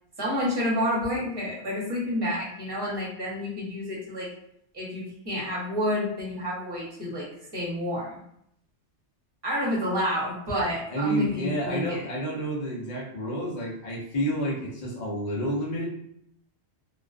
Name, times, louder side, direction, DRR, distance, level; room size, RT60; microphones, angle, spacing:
voice 1, 0.2-4.3 4.7-7.3 7.5-8.2 9.4-12.0, left 1 dB, 25° right, -5 dB, 0.9 m, -29 dB
voice 2, 10.9-15.9, right 1 dB, 50° left, -4 dB, 0.7 m, -29 dB
2.3 x 2.3 x 2.4 m, 0.73 s
omnidirectional pair, 1.1 m